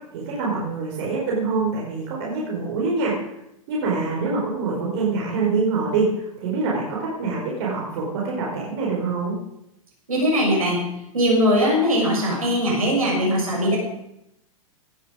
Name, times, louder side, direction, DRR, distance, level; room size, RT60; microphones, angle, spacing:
voice 1, 0.1-3.1 3.7-6.1 6.4-9.4, right 4 dB, 55° right, -4 dB, 5.1 m, -25 dB
voice 2, 10.1-10.8 11.1-13.8, equal, 80° right, -1 dB, 7.2 m, -20 dB
18.0 x 11.5 x 5.2 m, 0.86 s
figure-of-eight pair, 100°, 18 cm